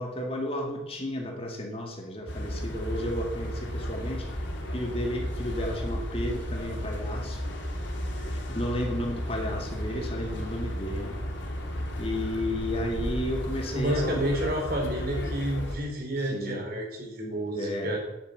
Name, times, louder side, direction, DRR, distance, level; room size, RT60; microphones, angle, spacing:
voice 1, 0.0-4.3 4.7-7.4 8.3-11.2 12.0-14.2 16.3-16.6 17.5-18.0, left 1 dB, 30° left, 2 dB, 2.0 m, -33 dB
sound 1, 2.3-15.8, equal, 80° left, 3.0 m, -33 dB
voice 2, 13.7-18.0, right 1 dB, 50° right, 0 dB, 4.2 m, -30 dB
9.9 x 8.3 x 9.3 m, 1.0 s
head